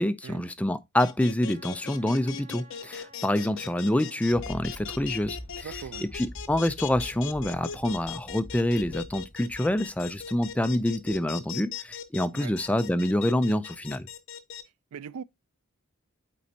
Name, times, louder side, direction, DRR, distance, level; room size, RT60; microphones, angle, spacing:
voice 1, 0.0-5.7 6.1-14.1, left 1 dB, 5° left, 0.3 m, -27 dB
sound 1, 1.0-14.6, left 8 dB, 65° left, 0.6 m, -38 dB
Wind instrument woodwind instrument, 1.4-5.3, right 3 dB, 40° right, 2.2 m, -56 dB
Thunder, 4.1-11.4 11.9-12.0, left 1 dB, 30° left, 3.1 m, -45 dB
voice 2, 5.6-6.1 12.3-12.7 14.9-15.2, right 7 dB, 85° right, 0.4 m, -40 dB
8.4 x 4.3 x 2.7 m
head